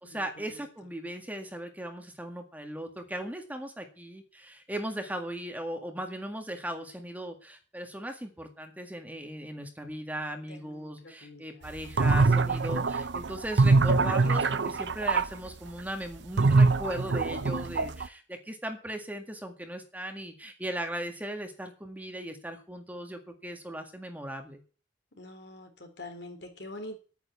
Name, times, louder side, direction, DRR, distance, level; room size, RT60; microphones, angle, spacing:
voice 1, 0.0-24.6, right 1 dB, 10° right, 4 dB, 1.8 m, -38 dB
voice 2, 10.5-11.7 25.1-27.0, left 1 dB, 70° left, 4 dB, 3.8 m, -45 dB
sound 1, 11.8-15.3 16.4-18.1, right 3 dB, 80° right, 0.7 m, -23 dB
9.7 x 9.4 x 8.3 m, 0.37 s
head